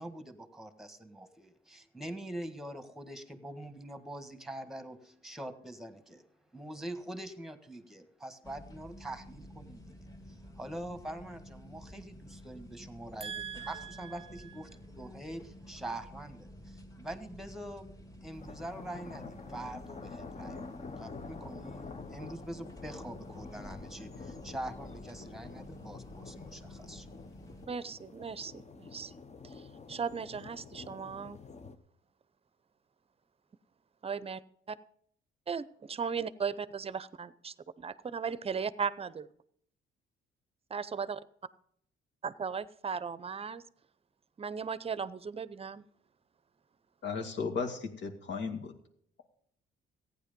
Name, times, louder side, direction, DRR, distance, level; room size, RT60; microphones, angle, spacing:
voice 1, 0.0-6.2 6.5-9.9 10.3-14.7 15.0-17.9 18.2-20.6 21.0-27.1, right 1 dB, ahead, 10 dB, 1.5 m, -44 dB
sound 1, 8.4-27.7, equal, 15° left, 2.3 m, -51 dB
voice 2, 13.2-13.9 27.7-29.1 29.9-31.4 34.0-34.4 35.5-39.3 40.7-41.2 42.2-43.6 44.4-45.8, right 6 dB, 30° right, 17 dB, 0.7 m, -37 dB
sound 2, 18.3-31.8, left 4 dB, 35° left, 1.0 m, -48 dB
voice 3, 47.0-48.7, left 5 dB, 65° left, 2 dB, 2.2 m, -35 dB
15.0 x 9.7 x 5.3 m, 0.68 s
cardioid pair, 90°, 20 cm